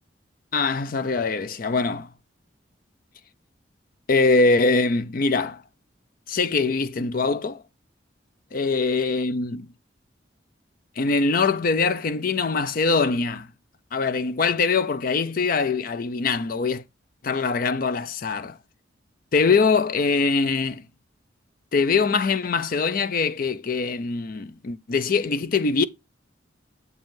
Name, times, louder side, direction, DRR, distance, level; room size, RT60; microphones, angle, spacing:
voice 1, 0.5-2.1 4.1-5.6 6.3-7.6 8.5-9.7 11.0-13.5 13.9-16.8 17.2-18.6 19.3-20.8 21.7-25.8, left 4 dB, 50° left, 0.5 m, -23 dB
7.9 x 5.2 x 3.7 m
head